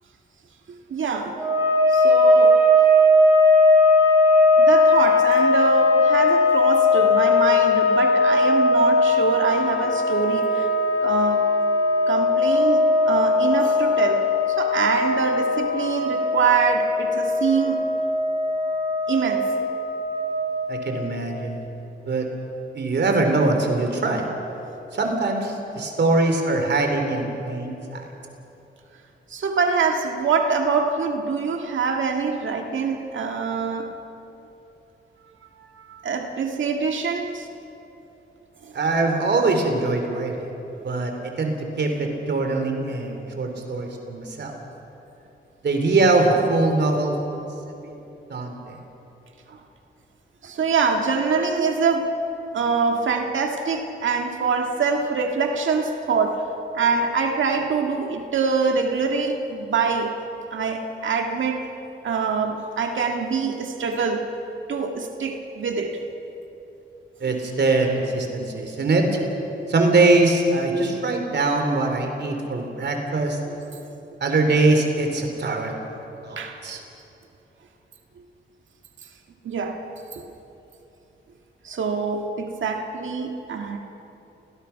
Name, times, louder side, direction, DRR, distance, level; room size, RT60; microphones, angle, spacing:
voice 1, 0.9-1.4 1.9-2.6 4.6-10.7 11.0-11.4 12.1-17.8 19.1-19.5 29.3-33.9 35.6-37.5 38.6-38.8 49.5-49.6 50.4-52.1 52.5-56.4 56.7-60.1 60.5-61.6 62.0-64.3 64.7-66.0 73.7-73.8 76.4-76.6 79.4-79.8 80.1-80.2 81.6-83.8, right 5 dB, 75° right, 3 dB, 1.8 m, -24 dB
sound 1, 1.4-21.0, left 2 dB, 15° right, 6.3 m, -19 dB
voice 2, 20.7-21.6 22.0-22.3 22.7-24.2 24.9-28.0 38.7-40.5 40.8-44.5 45.6-47.2 47.8-47.9 48.3-48.8 67.2-69.2 69.7-73.4 74.2-75.7 76.2-76.8, right 2 dB, 60° right, 4 dB, 3.4 m, -22 dB
29.0 x 19.0 x 5.8 m, 3.0 s
cardioid pair, 95°, 20 cm